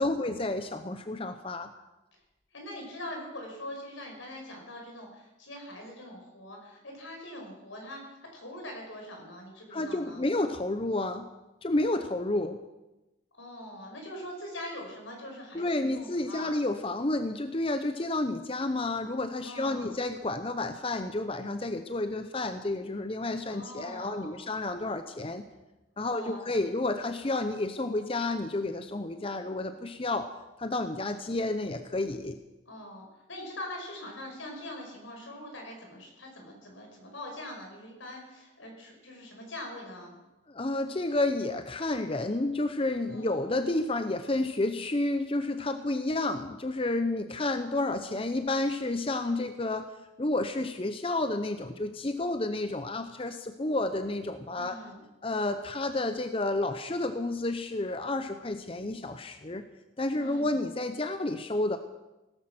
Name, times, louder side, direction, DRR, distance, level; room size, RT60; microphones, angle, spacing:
voice 1, 0.0-1.7 9.7-11.3 11.6-12.6 15.5-25.4 26.0-30.3 30.6-32.4 40.5-49.9 50.2-54.8 55.2-59.6 60.0-61.8, left 2 dB, 30° left, 9 dB, 0.7 m, -30 dB
voice 2, 2.5-10.2 13.4-16.5 19.4-20.0 23.5-24.5 26.1-26.4 32.7-40.2 43.1-43.4 54.5-55.1 60.2-60.5, left 1 dB, 85° left, 1 dB, 5.2 m, -43 dB
17.0 x 14.0 x 6.0 m, 1.0 s
head